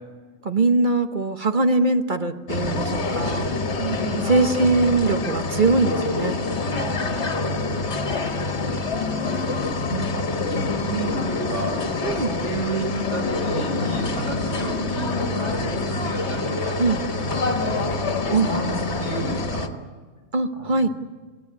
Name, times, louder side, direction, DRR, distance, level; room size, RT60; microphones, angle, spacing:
voice 1, 0.4-3.5 4.3-6.4 9.9-10.2 12.0-12.3 16.8-17.0 18.3-18.6 20.3-20.9, right 3 dB, 40° right, 6 dB, 1.3 m, -22 dB
sound 1, 2.5-19.7, left 3 dB, 60° left, 1.8 m, -26 dB
voice 2, 3.7-4.3 6.8-7.6 9.5-11.8 12.1-16.8 17.4-17.9 18.5-19.8 20.6-20.8, right 2 dB, 75° right, 1 dB, 7.3 m, -32 dB
27.0 x 18.5 x 9.7 m, 1.4 s
omnidirectional pair, 1.3 m